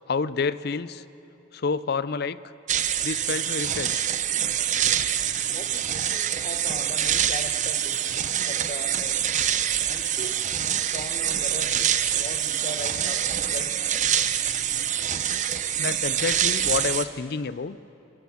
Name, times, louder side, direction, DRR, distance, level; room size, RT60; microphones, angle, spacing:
voice 1, 0.1-1.0 1.5-2.4 3.0-4.2 13.4-13.6 15.8-17.8, left 5 dB, 50° left, 16 dB, 0.5 m, -29 dB
sound 1, 2.7-17.1, right 10 dB, 40° right, 0.7 m, -25 dB
voice 2, 5.5-9.3 9.9-10.4 10.9-13.9, left 1 dB, 35° left, 7 dB, 1.1 m, -39 dB
25.5 x 14.5 x 7.1 m, 2.8 s
head